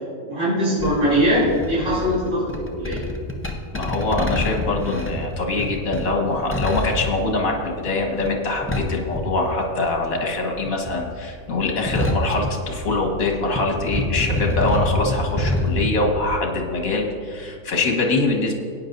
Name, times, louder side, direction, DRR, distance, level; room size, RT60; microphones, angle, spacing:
voice 1, 0.3-3.0, equal, 65° right, -11 dB, 3.6 m, -21 dB
sound 1, 0.8-10.1 10.3-13.2 13.5-15.9, left 1 dB, 10° left, 0.7 m, -27 dB
voice 2, 3.7-18.6, left 2 dB, 75° left, 1 dB, 2.0 m, -23 dB
17.0 x 9.6 x 2.7 m, 2.3 s
omnidirectional pair, 1.4 m